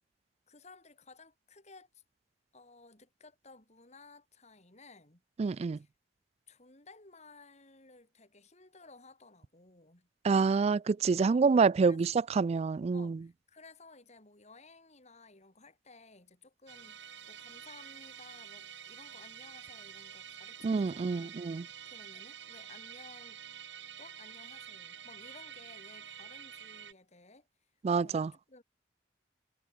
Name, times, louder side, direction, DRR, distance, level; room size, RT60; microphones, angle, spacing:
voice 1, 0.5-2.0 2.5-5.2 5.8-5.9 6.5-10.1 11.3-12.0 12.9-23.4 24.0-27.5 28.0-28.6, left 3 dB, 40° left, 5.9 m, -57 dB
voice 2, 5.4-5.8 10.2-13.2 20.6-21.6 27.8-28.3, right 4 dB, 35° right, 0.3 m, -27 dB
Musical instrument, 16.7-26.9, right 9 dB, 80° right, 6.7 m, -48 dB
head